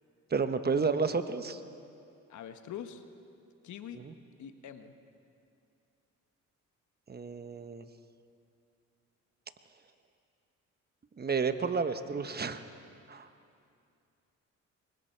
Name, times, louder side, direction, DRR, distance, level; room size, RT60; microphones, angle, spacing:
voice 1, 0.3-1.6 4.0-4.1 7.1-7.9 11.2-12.6 13.1-13.3, right 5 dB, 30° right, 10 dB, 1.1 m, -31 dB
voice 2, 2.3-3.0 3.6-4.0 4.4-4.9, left 9 dB, 70° left, 8 dB, 1.3 m, -44 dB
27.5 x 24.0 x 4.6 m, 2.5 s
cardioid pair, 90°, 30 cm